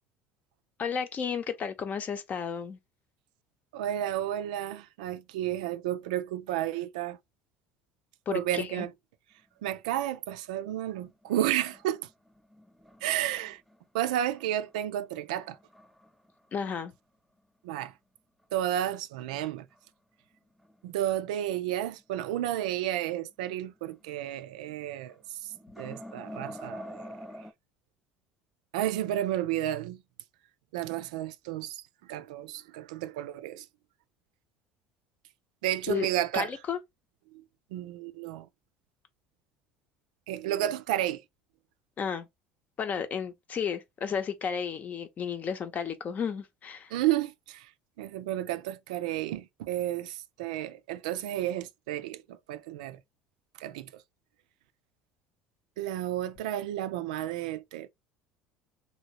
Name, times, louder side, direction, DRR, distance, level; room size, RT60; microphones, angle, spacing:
voice 1, 0.8-2.8 8.3-8.9 16.5-16.9 35.9-36.1 36.3-36.8 42.0-42.3 42.8-46.9, left 7 dB, 40° left, 0.7 m, -33 dB
voice 2, 3.7-7.2 8.3-8.9 9.6-12.1 13.0-13.6 13.9-15.6 17.6-18.0 18.5-19.7 20.8-27.5 28.7-30.0 30.7-33.7 35.6-36.6 37.3-37.4 37.7-38.5 40.3-41.2 46.9-47.7 48.0-53.0 53.5-54.0 55.8-57.9, right 12 dB, 75° right, 0.3 m, -32 dB
sound 1, 10.7-13.8 14.3-14.9 15.4-16.5 16.8-16.9 17.4-17.5 19.7-19.8 20.3-21.6 22.0-22.1 23.8-24.2 24.5-24.7 25.1-27.5, equal, ahead, 0.6 m, -47 dB
2.9 x 2.7 x 2.9 m
hypercardioid pair, 70°, 4 cm